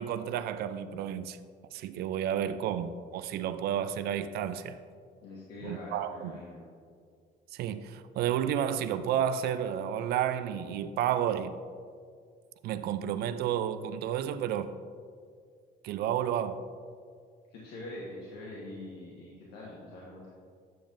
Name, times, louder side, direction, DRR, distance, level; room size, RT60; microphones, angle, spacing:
voice 1, 0.0-1.4 1.7-4.8 5.6-6.4 7.5-11.6 12.6-14.7 15.8-16.6, right 9 dB, 70° right, 0.4 m, -31 dB
voice 2, 5.2-6.6 17.5-20.3, left 1 dB, 80° left, 1.3 m, -44 dB
9.2 x 6.8 x 2.6 m
cardioid pair, 110°, 17 cm